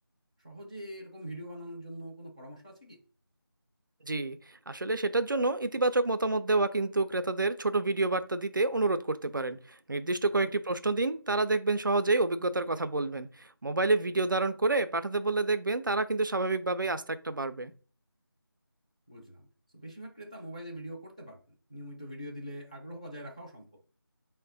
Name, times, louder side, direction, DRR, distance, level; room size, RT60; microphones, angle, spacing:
voice 1, 0.4-3.0 10.3-10.5 19.1-19.5 19.7-21.4 21.7-23.7, equal, 15° left, -2 dB, 0.4 m, -43 dB
voice 2, 4.0-4.4 4.7-17.7, right 2 dB, 55° right, 10 dB, 0.4 m, -28 dB
4.5 x 2.1 x 3.8 m, 0.38 s
figure-of-eight pair, 165°, 13 cm